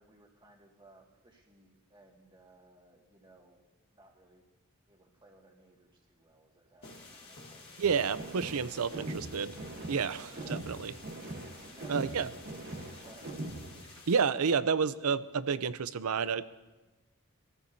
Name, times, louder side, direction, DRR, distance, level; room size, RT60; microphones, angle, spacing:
voice 1, 0.0-4.5 4.9-8.1 10.2-10.6 11.7-12.5 13.0-13.4, right 2 dB, 20° right, 0 dB, 2.0 m, -59 dB
sound 1, 6.8-10.5, left 1 dB, 50° left, 1.6 m, -55 dB
sound 2, 6.8-14.2, left 3 dB, 25° left, 2.3 m, -53 dB
sound 3, 7.8-13.8, right 1 dB, 45° right, 1.2 m, -42 dB
voice 2, 7.8-9.6 9.9-10.9 11.9-12.3 14.1-16.4, right 6 dB, 80° right, 14 dB, 0.6 m, -30 dB
24.5 x 14.5 x 2.8 m, 1.1 s
head